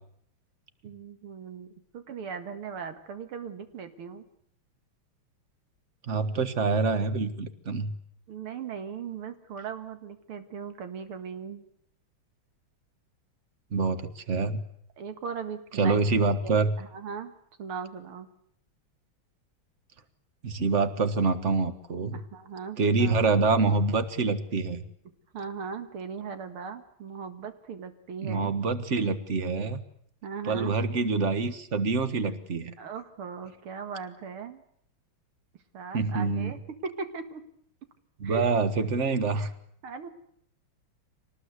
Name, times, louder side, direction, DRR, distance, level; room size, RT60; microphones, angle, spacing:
voice 1, 0.8-1.7 1.9-4.2 8.3-11.6 15.0-16.2 16.4-17.3 17.6-18.3 22.1-23.2 25.3-28.5 30.2-30.8 32.8-34.6 35.7-37.4 38.2-38.5 39.4-39.5 39.8-40.1, right 6 dB, 85° right, 8 dB, 2.6 m, -38 dB
voice 2, 6.0-7.9 13.7-14.6 15.7-16.8 20.4-22.2 22.8-24.8 28.2-29.8 30.4-32.7 35.9-36.5 38.2-39.5, right 4 dB, 40° right, 11 dB, 1.5 m, -26 dB
25.5 x 19.0 x 8.2 m, 0.69 s
omnidirectional pair, 2.3 m